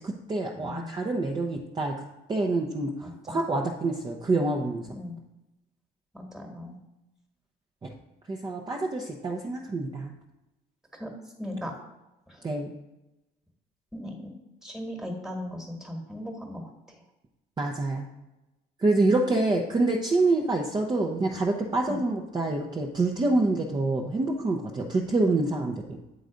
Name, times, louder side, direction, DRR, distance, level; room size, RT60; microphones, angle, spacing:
voice 1, 0.0-1.9 2.3-4.9 8.3-10.1 12.4-12.7 17.6-18.1 18.8-26.0, right 2 dB, 25° right, 1 dB, 0.7 m, -26 dB
voice 2, 0.5-0.9 3.0-3.4 4.9-5.2 6.1-6.8 10.9-11.1 11.4-11.7 12.3-12.4 13.9-14.3 14.6-16.6 18.8-19.0 21.9-22.0, left 1 dB, 5° right, 3 dB, 1.5 m, -37 dB
8.0 x 4.0 x 5.1 m, 0.97 s
cardioid pair, 110°, 17 cm